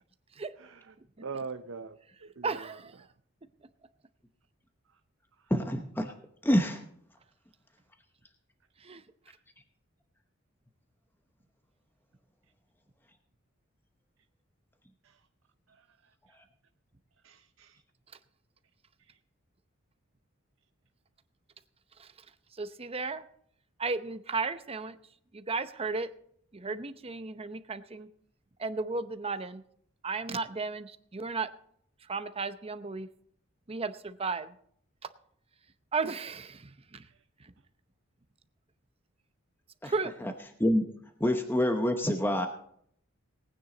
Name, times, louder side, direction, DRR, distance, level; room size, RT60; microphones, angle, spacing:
voice 1, 0.6-2.7 4.9-5.0 15.0-15.2 15.7-15.9 16.3-16.4 17.2-17.8 19.0-19.2 37.1-37.2, right 5 dB, 70° right, 7 dB, 0.7 m, -43 dB
voice 2, 2.4-3.1 8.8-9.0 22.0-22.3 22.5-23.2 23.8-25.0 25.3-26.1 26.5-28.1 28.6-29.6 30.0-31.5 32.0-33.1 33.7-34.5 35.9-37.1 37.4-37.5 39.8-40.1, right 4 dB, 30° right, 11 dB, 0.8 m, -34 dB
voice 3, 5.5-6.1 6.4-6.8 39.8-39.9 40.6-40.9 41.2-42.5, equal, 10° left, 5 dB, 0.9 m, -26 dB
19.0 x 9.4 x 4.0 m, 0.66 s
head